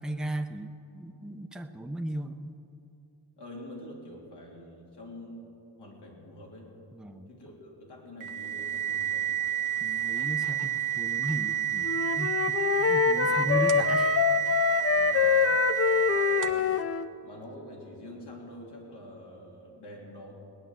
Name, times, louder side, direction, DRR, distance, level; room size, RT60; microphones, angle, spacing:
voice 1, 0.0-2.6 6.9-7.3 9.8-14.1, right 1 dB, ahead, 6 dB, 0.7 m, -36 dB
voice 2, 3.4-6.7 7.3-9.3 13.2-13.5 14.9-15.3 16.4-16.7 17.2-20.3, left 1 dB, 70° left, -2 dB, 3.4 m, -46 dB
sound 1, 8.2-16.7, right 10 dB, 45° right, 0.8 m, -30 dB
Wind instrument woodwind instrument, 11.8-17.1, left 7 dB, 35° left, 0.5 m, -25 dB
18.5 x 10.0 x 7.5 m, 2.9 s
wide cardioid pair, 105°, 42 cm